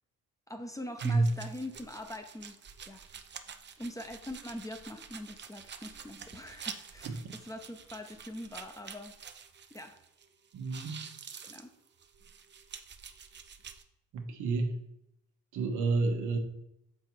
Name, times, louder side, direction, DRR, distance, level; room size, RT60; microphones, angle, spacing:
voice 1, 0.5-2.6 2.9-3.0 3.8-9.1 9.7-10.0 11.4-11.7, left 1 dB, 10° left, 6 dB, 0.8 m, -43 dB
sound 1, 1.0-10.3 10.5-13.8, right 6 dB, 35° right, 0.6 m, -48 dB
voice 2, 1.0-1.3 7.0-7.3 10.5-11.0 14.1-14.8 15.5-16.4, right 3 dB, 80° right, 3 dB, 1.2 m, -30 dB
6.8 x 4.1 x 4.5 m, 0.81 s
cardioid pair, 90°, 30 cm